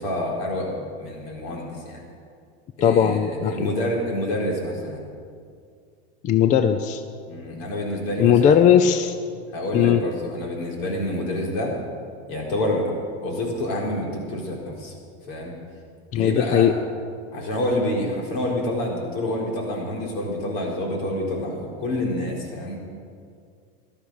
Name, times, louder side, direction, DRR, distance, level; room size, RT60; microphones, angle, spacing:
voice 1, 0.0-2.0 2.8-5.0 7.3-8.6 9.5-11.8 12.3-12.9 13.2-14.9 15.3-15.5 16.1-16.7 17.3-22.8, left 1 dB, 60° left, -1 dB, 4.2 m, -27 dB
voice 2, 2.8-3.7 6.2-7.0 8.2-9.2 9.7-10.0 16.1-16.7, left 9 dB, 25° left, 10 dB, 0.4 m, -18 dB
15.0 x 12.0 x 6.4 m, 2.3 s
supercardioid pair, 140°, 33 cm